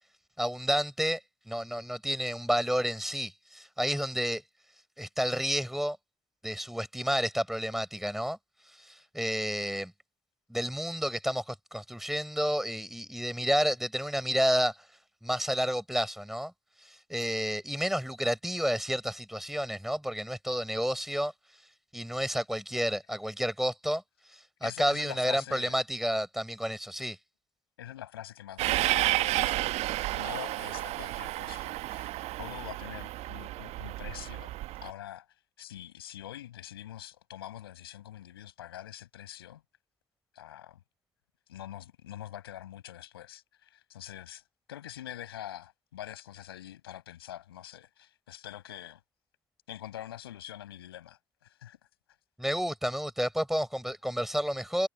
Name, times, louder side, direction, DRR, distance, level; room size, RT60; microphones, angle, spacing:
voice 1, 0.4-1.2 1.5-4.4 5.0-6.0 6.4-8.4 8.8-9.9 10.5-14.8 15.2-16.5 16.8-21.3 21.9-24.0 24.3-27.2 52.4-54.9, equal, ahead, 7.7 m, -30 dB
voice 2, 24.6-25.8 27.8-34.5 34.8-35.3 35.6-39.6 40.3-40.8 41.5-44.4 44.7-49.0 49.7-51.8, left 12 dB, 75° left, 7.8 m, -45 dB
Train, 28.6-34.9, right 17 dB, 60° right, 1.5 m, -31 dB
figure-of-eight pair, 50°, 13 cm